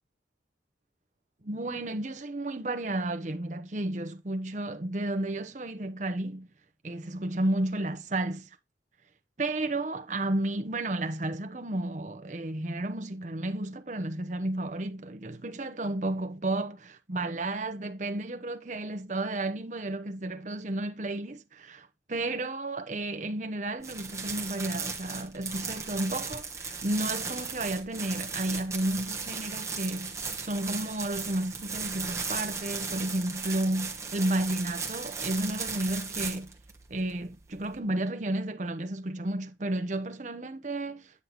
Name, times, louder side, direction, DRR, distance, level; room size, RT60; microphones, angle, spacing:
voice 1, 1.4-6.5 6.8-8.5 9.4-36.5 36.9-41.2, right 1 dB, 40° right, 0.8 m, -32 dB
sound 1, 23.8-37.8, right 5 dB, 15° right, 1.4 m, -36 dB
9.6 x 5.4 x 2.9 m
head